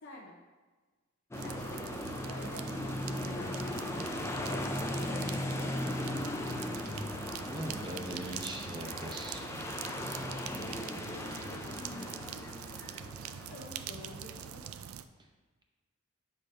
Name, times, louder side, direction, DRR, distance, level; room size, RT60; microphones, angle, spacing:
voice 1, 0.0-0.4 1.4-5.8 10.3-12.4 13.5-14.8, left 1 dB, 55° left, -1 dB, 0.7 m, -50 dB
sound 1, 1.3-14.7, left 1 dB, 15° left, 0.4 m, -38 dB
sound 2, 1.3-15.0, right 9 dB, 80° right, 0.3 m, -44 dB
voice 2, 7.4-9.4, right 1 dB, 20° right, 1 dB, 0.7 m, -40 dB
6.8 x 5.0 x 3.3 m, 1.3 s
head